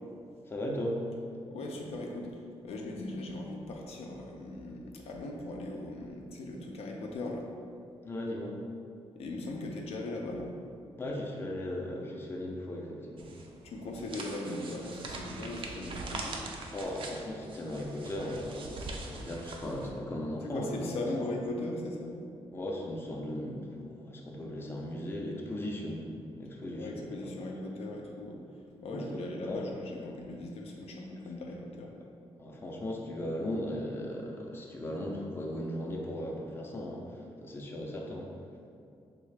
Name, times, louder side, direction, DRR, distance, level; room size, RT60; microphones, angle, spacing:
voice 1, 0.5-1.0 8.0-8.6 11.0-13.3 16.7-21.1 22.5-27.3 28.9-29.7 32.4-38.3, left 1 dB, 20° left, -1 dB, 0.4 m, -37 dB
voice 2, 1.5-7.5 9.2-10.5 13.6-16.5 20.4-22.2 26.7-28.4 28.8-31.9, left 2 dB, 75° left, 0 dB, 0.4 m, -39 dB
sound 1, 13.2-19.9, right 3 dB, 55° right, 0.4 m, -43 dB
3.6 x 2.4 x 3.2 m, 2.4 s
cardioid pair, 120°, 10 cm